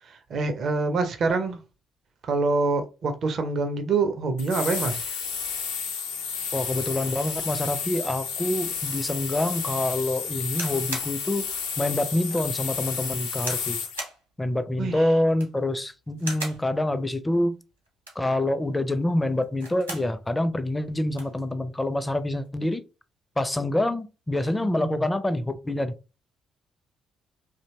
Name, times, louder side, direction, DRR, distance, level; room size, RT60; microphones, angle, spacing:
voice 1, 0.1-1.6 2.3-5.2 14.8-15.0 24.6-25.0, right 3 dB, 50° right, 0.5 m, -26 dB
sound 1, 4.4-14.0, left 6 dB, 75° left, 0.5 m, -31 dB
voice 2, 6.5-11.5 11.8-13.8 14.4-17.5 18.2-22.8 23.4-25.9, left 1 dB, 15° left, 0.4 m, -26 dB
sound 2, 10.5-11.1 11.7-11.8 12.3-12.5 13.4-13.7 14.0-14.2 15.2-15.6 16.2-16.6 17.9-18.3 19.4-20.1 20.5-20.6 20.8-21.3 22.2-22.5, right 1 dB, 90° right, 0.7 m, -37 dB
2.7 x 2.1 x 2.7 m
figure-of-eight pair, 45°, 0 cm